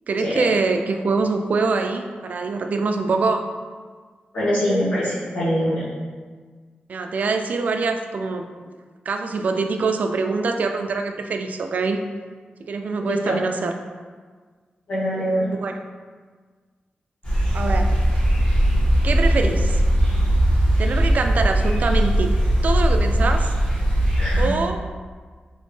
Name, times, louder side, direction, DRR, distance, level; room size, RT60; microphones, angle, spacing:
voice 1, 0.1-3.4 6.9-8.5 9.1-12.0 12.7-13.7 15.5-15.8 17.5-18.0 19.0-19.8 20.8-22.3 22.6-23.5 24.4-24.9, right 4 dB, 55° right, 6 dB, 0.3 m, -24 dB
voice 2, 4.3-5.8 13.0-13.4 14.9-15.5 24.2-24.4, equal, 70° left, -12 dB, 1.3 m, -23 dB
sound 1, 17.2-24.5, equal, 35° left, 1.5 m, -19 dB
4.1 x 3.6 x 3.2 m, 1.5 s
wide cardioid pair, 175°, 3 cm